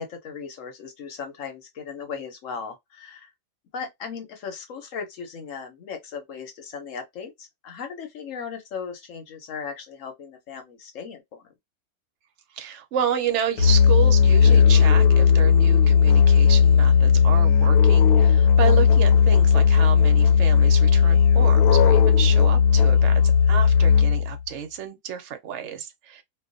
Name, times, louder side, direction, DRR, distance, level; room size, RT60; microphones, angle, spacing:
voice 1, 0.0-3.3 3.7-11.4, left 6 dB, 65° left, 1.0 m, -37 dB
voice 2, 12.5-26.2, right 9 dB, 65° right, 0.8 m, -30 dB
Musical instrument, 13.6-24.4, left 6 dB, 85° left, 1.1 m, -16 dB
2.3 x 2.2 x 2.5 m
omnidirectional pair, 1.6 m